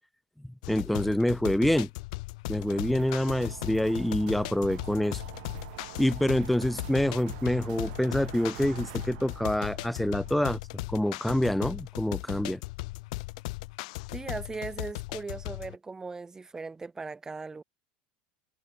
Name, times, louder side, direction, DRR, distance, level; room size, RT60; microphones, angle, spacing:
sound 1, 0.6-15.8, left 23 dB, 75° left, 3.2 m, -38 dB
voice 1, 0.7-1.9 2.5-5.2 6.0-10.6 10.9-12.6, left 1 dB, ahead, 1.0 m, -26 dB
sound 2, 2.7-10.5, right 21 dB, 75° right, 6.2 m, -45 dB
voice 2, 14.1-17.6, right 4 dB, 15° right, 2.4 m, -38 dB
supercardioid pair, 125°, 4 cm